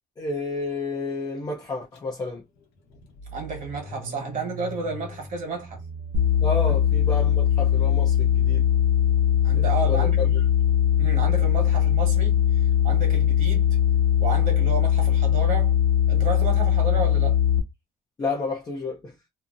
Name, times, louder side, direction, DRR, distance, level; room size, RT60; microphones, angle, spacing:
voice 1, 0.2-2.4 6.4-8.7 9.5-10.4 18.2-19.1, left 3 dB, 25° left, 0.5 m, -31 dB
Car / Engine starting, 1.9-2.0 2.4-7.6, right 3 dB, 80° left, 0.8 m, -41 dB
voice 2, 3.3-5.8 6.7-6.8 9.4-10.4 11.0-13.7 14.2-15.7 16.1-17.4, right 3 dB, 50° right, 1.3 m, -32 dB
sound 1, 6.1-17.6, left 10 dB, 70° right, 0.7 m, -20 dB
2.7 x 2.0 x 2.4 m
cardioid pair, 110°, 17 cm